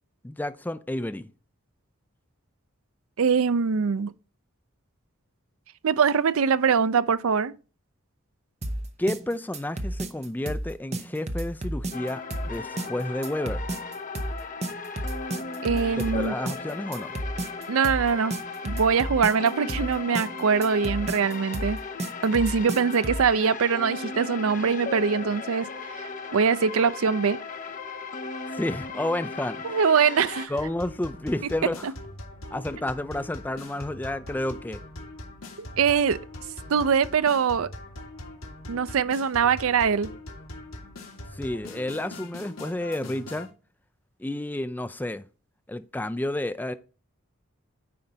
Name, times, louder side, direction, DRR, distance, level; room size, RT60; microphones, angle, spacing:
voice 1, 0.2-1.3 9.0-13.6 16.0-17.2 28.5-29.8 30.5-31.9 32.5-34.8 41.3-43.5 44.2-45.3 45.7-46.7, left 1 dB, 10° left, 0.3 m, -31 dB
voice 2, 3.2-4.1 5.8-7.6 15.6-16.3 17.7-18.3 18.6-21.8 22.2-25.7 25.9-27.4 29.6-30.5 31.8-31.9 35.6-36.2 36.7-37.7 38.7-40.1, right 6 dB, 70° right, 0.4 m, -23 dB
sound 1, 8.6-23.3, right 1 dB, 30° right, 0.7 m, -32 dB
sound 2, 11.9-30.5, left 4 dB, 35° left, 0.8 m, -37 dB
sound 3, 30.6-43.5, left 1 dB, 75° left, 2.0 m, -42 dB
9.4 x 4.5 x 3.9 m
head